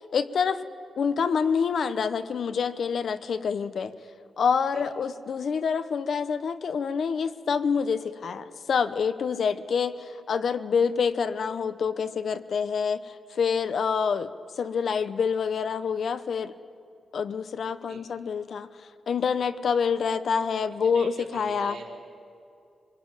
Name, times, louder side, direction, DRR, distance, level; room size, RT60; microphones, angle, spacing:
voice 1, 0.1-0.6 1.0-3.9 4.4-14.3 14.6-16.5 17.1-18.7 19.1-21.8, left 6 dB, 55° left, 12 dB, 0.9 m, -27 dB
voice 2, 20.6-22.0, right 5 dB, 80° right, -1 dB, 4.9 m, -44 dB
25.5 x 21.5 x 9.0 m, 2.5 s
wide cardioid pair, 155°, 0 cm